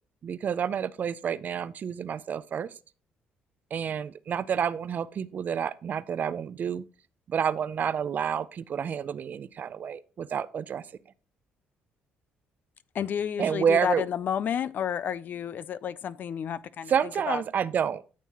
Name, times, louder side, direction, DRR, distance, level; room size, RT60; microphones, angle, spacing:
voice 1, 0.2-2.7 3.7-6.8 7.3-10.8 13.4-14.0 16.9-18.0, right 7 dB, 50° right, 0.4 m, -29 dB
voice 2, 12.9-16.9 17.3-17.4, left 8 dB, 55° left, 0.4 m, -30 dB
9.2 x 6.3 x 2.9 m
cardioid pair, 95°, 4 cm